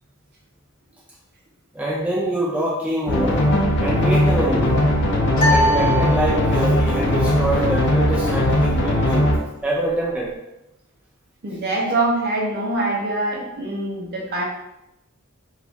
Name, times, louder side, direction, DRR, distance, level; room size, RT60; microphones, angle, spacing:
voice 1, 1.7-3.5 3.8-4.8 5.5-9.3 9.6-10.3, right 1 dB, 5° right, -6 dB, 0.4 m, -25 dB
sound 1, 3.1-9.4, left 1 dB, 55° left, 0.5 m, -19 dB
sound 2, 5.4-6.8, equal, 35° left, 0.9 m, -22 dB
voice 2, 11.4-14.4, right 2 dB, 45° right, -2 dB, 0.7 m, -24 dB
3.1 x 2.4 x 2.5 m, 0.89 s
head